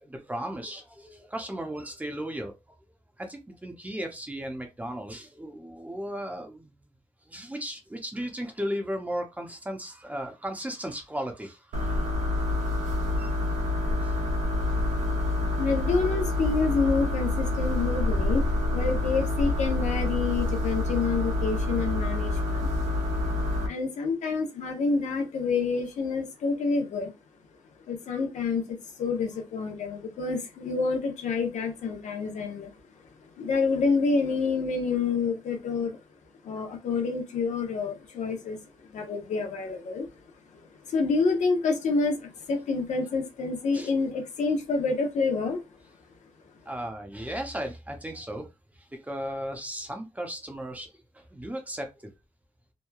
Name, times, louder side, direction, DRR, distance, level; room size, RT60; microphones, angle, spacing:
voice 1, 0.0-2.5 3.2-6.7 7.3-12.1 13.2-13.3 14.0-14.2 43.7-43.9 46.7-48.5 48.8-52.1, equal, 10° right, 0.6 m, -36 dB
sound 1, 11.7-23.7, left 2 dB, 85° right, 0.8 m, -27 dB
voice 2, 15.6-18.4 18.7-22.7 23.6-27.1 27.9-32.7 33.4-36.0 36.4-38.6 38.9-40.1 40.5-45.6, left 4 dB, 85° left, 0.7 m, -28 dB
2.9 x 2.2 x 2.2 m
wide cardioid pair, 110°, 12 cm